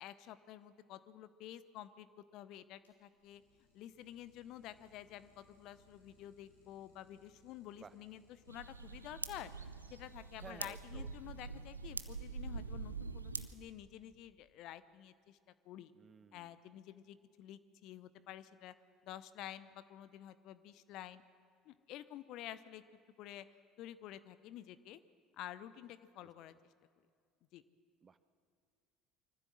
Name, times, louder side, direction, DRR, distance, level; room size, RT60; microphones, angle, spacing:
voice 1, 0.0-3.4 3.7-8.2 8.5-9.5 9.9-15.4 15.6-15.9 16.3-18.7 19.0-21.2 21.6-22.8 23.2-23.5 23.8-25.0 25.3-26.5 27.5-27.6, left 12 dB, 55° left, 14 dB, 0.8 m, -50 dB
Idling, 2.7-10.9, left 1 dB, 80° left, 3.4 m, -69 dB
sound 1, 8.5-13.5, right 4 dB, 85° right, 0.6 m, -44 dB
voice 2, 10.4-11.1 15.9-16.6 26.2-26.6 28.0-28.2, right 5 dB, 30° right, 14 dB, 0.9 m, -55 dB
24.0 x 14.5 x 7.6 m, 2.1 s
figure-of-eight pair, 60°, 0 cm